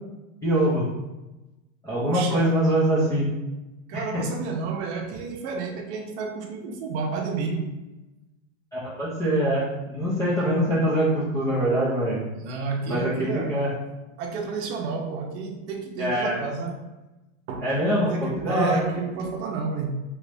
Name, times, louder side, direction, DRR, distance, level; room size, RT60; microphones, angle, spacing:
voice 1, 0.4-0.8 1.8-3.3 3.9-4.2 8.7-12.2 12.9-13.7 16.0-16.4 17.6-18.9, right 1 dB, 10° left, -9 dB, 0.3 m, -24 dB
voice 2, 2.1-2.5 3.9-7.7 10.4-10.6 12.3-13.6 14.2-16.9 17.5-17.7 18.0-20.0, right 4 dB, 55° right, 2 dB, 0.7 m, -31 dB
3.0 x 2.4 x 3.3 m, 1.0 s
supercardioid pair, 140°, 41 cm